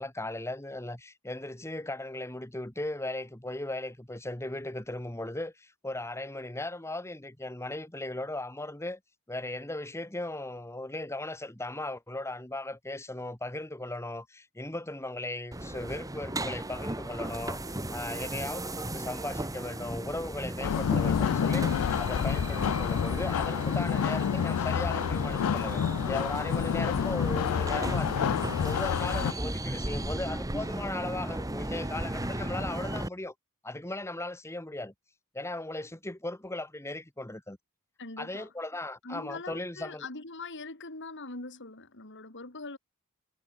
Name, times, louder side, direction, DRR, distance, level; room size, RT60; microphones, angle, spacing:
voice 1, 0.0-9.0 9.3-33.3 33.6-34.9 35.3-37.6 38.2-40.1, left 2 dB, 10° left, 1.6 m, -37 dB
sound 1, 15.5-33.1, right 1 dB, 15° right, 1.7 m, -36 dB
sound 2, 20.6-29.3, left 8 dB, 85° left, 0.4 m, -28 dB
voice 2, 38.0-38.5 39.0-42.8, left 3 dB, 55° left, 3.9 m, -42 dB
head